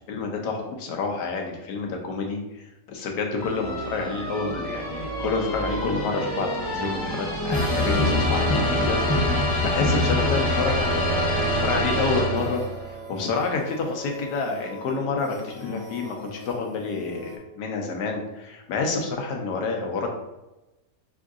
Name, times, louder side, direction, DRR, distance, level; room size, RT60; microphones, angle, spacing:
voice 1, 0.1-12.6 13.1-20.1, left 4 dB, 75° left, 2 dB, 1.2 m, -29 dB
sound 1, 3.4-12.9, left 1 dB, 20° left, 0.8 m, -25 dB
sound 2, 12.3-17.4, left 1 dB, 60° right, 0.6 m, -41 dB
4.9 x 3.6 x 2.4 m, 0.99 s
omnidirectional pair, 1.9 m